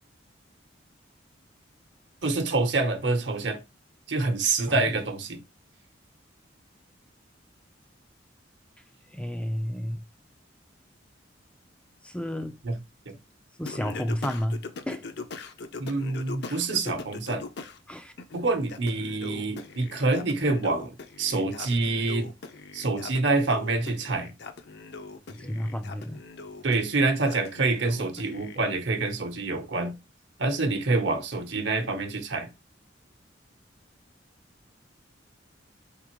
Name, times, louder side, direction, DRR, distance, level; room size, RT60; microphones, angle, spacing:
voice 1, 2.2-3.6 4.1-5.4 12.6-12.8 13.1-13.2 15.8-17.5 18.3-22.3 22.7-24.3 26.6-29.9 30.4-32.5, right 3 dB, 70° right, 0.9 m, -26 dB
voice 2, 9.1-10.0 12.0-12.6 13.6-15.0 17.9-18.1 25.3-26.2, equal, 5° left, 0.3 m, -31 dB
Singing, 13.7-17.8 18.2-28.6, left 3 dB, 60° left, 0.6 m, -41 dB
4.3 x 3.7 x 2.9 m
head